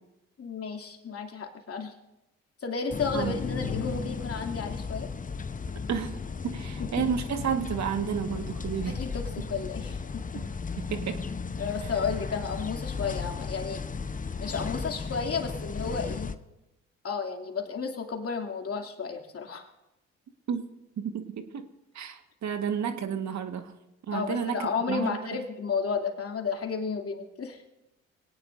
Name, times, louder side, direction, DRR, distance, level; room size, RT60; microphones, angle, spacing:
voice 1, 0.4-1.9 2.6-5.1 7.0-7.1 8.9-10.0 10.3-10.4 11.6-13.8 14.4-16.3 17.0-19.7 24.1-27.6, left 5 dB, 40° left, 3 dB, 2.9 m, -32 dB
sound 1, 2.9-16.4, left 5 dB, 20° left, 0.9 m, -35 dB
sound 2, 3.3-4.5, left 11 dB, 90° left, 0.6 m, -42 dB
voice 2, 5.9-6.2 6.4-9.1 10.3-10.4 10.8-11.2 20.5-20.7 21.0-21.7 21.9-23.8 24.1-25.4, right 7 dB, 50° right, 8 dB, 1.7 m, -31 dB
24.0 x 18.0 x 2.7 m, 0.96 s
hypercardioid pair, 50°, 36 cm